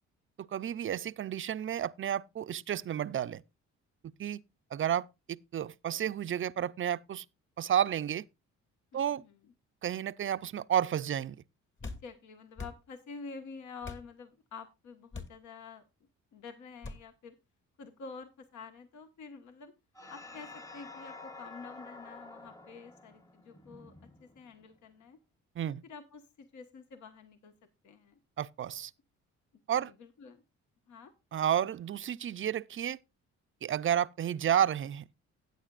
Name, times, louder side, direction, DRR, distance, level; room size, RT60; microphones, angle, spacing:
voice 1, 0.4-3.4 4.2-4.4 4.7-7.2 7.6-8.2 8.9-9.2 9.8-11.4 25.6-25.8 28.4-28.9 29.7-29.9 31.3-33.0 33.6-35.0, right 9 dB, 45° right, 0.5 m, -31 dB
voice 2, 8.9-9.5 11.8-17.4 17.8-19.7 20.1-25.2 25.8-27.5 27.8-28.2 29.5-30.4 30.9-31.1, left 4 dB, 70° left, 1.5 m, -49 dB
sound 1, 11.8-12.1 12.6-12.8 13.8-14.1 15.1-15.4 16.8-17.0, left 3 dB, 40° left, 2.1 m, -41 dB
sound 2, 19.9-24.7, left 3 dB, 10° left, 1.0 m, -49 dB
14.5 x 9.3 x 2.4 m
cardioid pair, 90°, 30 cm